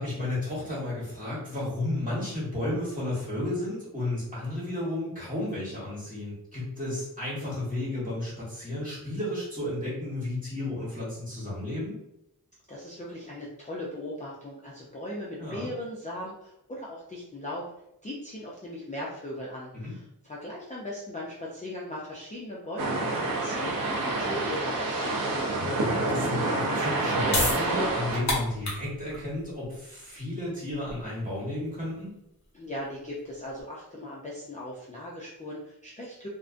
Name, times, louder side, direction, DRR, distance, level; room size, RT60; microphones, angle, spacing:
voice 1, 0.0-11.9 15.4-15.7 19.7-19.9 25.5-32.1, left 1 dB, 20° right, -7 dB, 1.2 m, -33 dB
voice 2, 12.7-17.7 18.0-25.2 32.5-36.3, left 1 dB, 20° left, -5 dB, 0.4 m, -38 dB
sound 1, 22.8-28.2, right 2 dB, 60° right, 0.6 m, -28 dB
sound 2, 27.3-33.6, left 2 dB, 50° left, 0.8 m, -34 dB
2.4 x 2.1 x 2.4 m, 0.83 s
wide cardioid pair, 105°, 38 cm